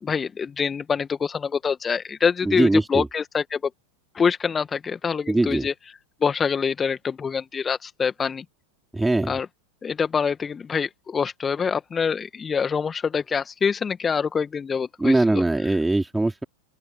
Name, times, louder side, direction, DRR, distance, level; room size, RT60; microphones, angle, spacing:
voice 1, 0.0-3.7 4.1-5.7 6.2-8.4 9.3-9.5 9.8-15.2 15.6-15.8, left 6 dB, 20° left, 1.8 m, -25 dB
voice 2, 2.4-3.1 5.3-5.7 8.9-9.3 15.0-16.4, right 2 dB, 5° right, 4.7 m, -21 dB
open air
figure-of-eight pair, 90°, 0 cm